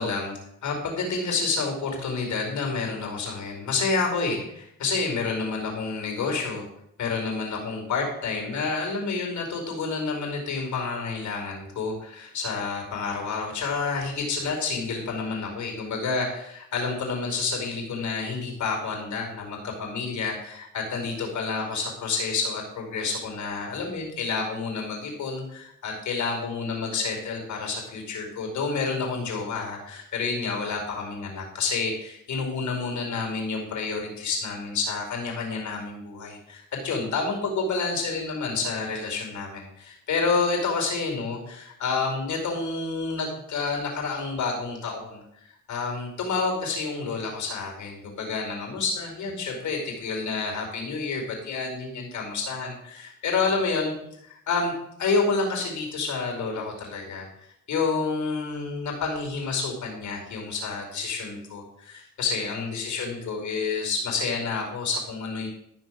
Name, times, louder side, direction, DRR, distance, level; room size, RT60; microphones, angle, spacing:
voice 1, 0.0-6.7 7.0-45.2 45.7-53.9 54.2-54.7 55.0-57.3 57.7-65.5, left 4 dB, 70° left, 1 dB, 4.9 m, -29 dB
14.0 x 6.3 x 6.5 m, 0.75 s
cardioid pair, 90°, 30 cm